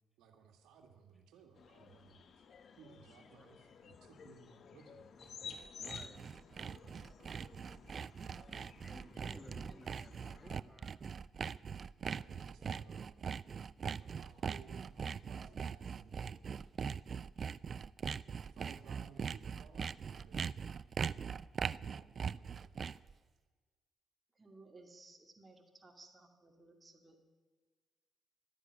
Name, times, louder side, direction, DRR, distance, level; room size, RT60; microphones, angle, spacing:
voice 1, 0.2-2.4 2.8-5.1 9.1-9.5 12.0-13.2 14.0-16.4 18.2-20.4 21.7-22.9, right 6 dB, 90° right, 4 dB, 1.8 m, -60 dB
sound 1, 1.6-10.6, left 6 dB, 55° left, 0.9 m, -54 dB
Sawing, 5.3-23.1, right 6 dB, 45° right, 0.3 m, -41 dB
voice 2, 5.7-6.2 6.6-6.7 7.3-7.4 8.8-11.1, equal, 5° left, 4 dB, 2.2 m, -56 dB
voice 3, 24.4-27.2, right 3 dB, 25° right, 2 dB, 2.5 m, -59 dB
12.5 x 9.7 x 9.5 m, 1.4 s
cardioid pair, 90°, 0 cm